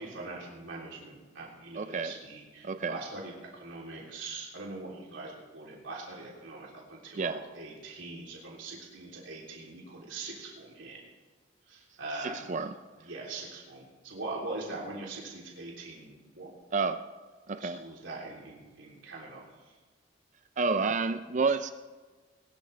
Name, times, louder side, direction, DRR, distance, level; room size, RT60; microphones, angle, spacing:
voice 1, 0.0-11.0 11.7-12.4 13.0-16.5 17.6-19.4, right 2 dB, 90° right, -3 dB, 3.3 m, -42 dB
voice 2, 1.7-2.2 2.6-3.0 7.1-7.4 12.2-12.8 16.7-17.0 17.5-17.8 20.6-21.7, right 4 dB, 40° right, 10 dB, 0.5 m, -30 dB
21.5 x 12.5 x 3.4 m, 1.3 s
head